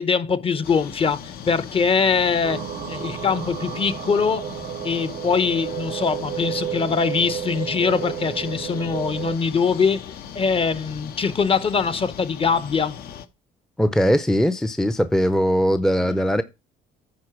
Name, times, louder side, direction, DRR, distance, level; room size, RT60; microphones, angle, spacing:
voice 1, 0.0-4.5 4.8-10.0 10.3-13.0 16.0-16.2, left 5 dB, 35° left, 0.9 m, -22 dB
sound 1, 0.6-13.3, left 8 dB, 65° left, 0.9 m, -39 dB
sound 2, 2.4-9.3, right 11 dB, 50° right, 0.5 m, -32 dB
voice 2, 13.8-16.4, equal, 5° left, 0.5 m, -20 dB
9.7 x 4.0 x 6.0 m
cardioid pair, 110°, 17 cm